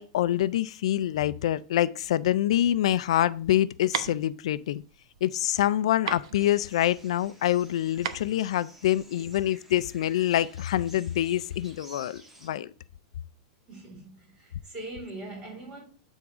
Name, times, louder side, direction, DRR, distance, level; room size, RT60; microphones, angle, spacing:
voice 1, 0.0-4.8 5.2-12.7, left 12 dB, 80° left, 0.4 m, -26 dB
sound 1, 2.8-9.4, right 8 dB, 80° right, 0.8 m, -38 dB
sound 2, 6.3-12.5, right 1 dB, 10° right, 1.4 m, -53 dB
voice 2, 13.7-15.8, right 2 dB, 30° right, 3.7 m, -41 dB
8.6 x 3.6 x 4.8 m
supercardioid pair, 155°, 3 cm